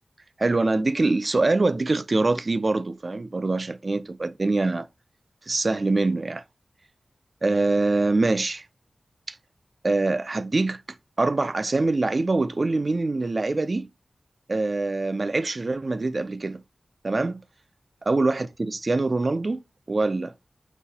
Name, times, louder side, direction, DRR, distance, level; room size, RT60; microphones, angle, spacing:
voice 1, 0.4-4.9 5.5-6.4 7.4-8.7 9.3-9.4 9.8-10.8 11.2-13.9 14.5-16.6 17.0-17.4 18.1-19.6 19.9-20.3, right 3 dB, 45° right, 0.3 m, -24 dB
4.1 x 2.6 x 4.0 m
wide cardioid pair, 90°, 0 cm